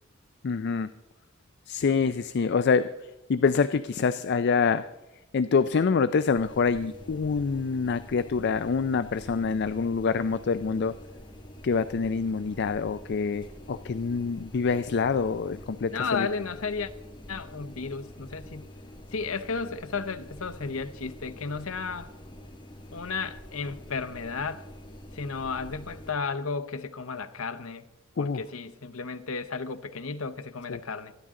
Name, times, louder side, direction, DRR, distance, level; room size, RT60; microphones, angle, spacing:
voice 1, 0.4-0.9 1.7-2.9 3.3-4.9 5.3-11.0 11.6-16.3 28.2-28.4 30.7-30.8, left 5 dB, 55° left, 0.4 m, -26 dB
sound 1, 6.3-26.1, equal, 25° left, 2.0 m, -46 dB
voice 2, 15.9-16.9 17.3-18.7 19.1-22.1 22.9-24.7 25.1-27.8 28.2-31.1, left 4 dB, 80° left, 0.9 m, -33 dB
25.5 x 10.0 x 3.7 m
head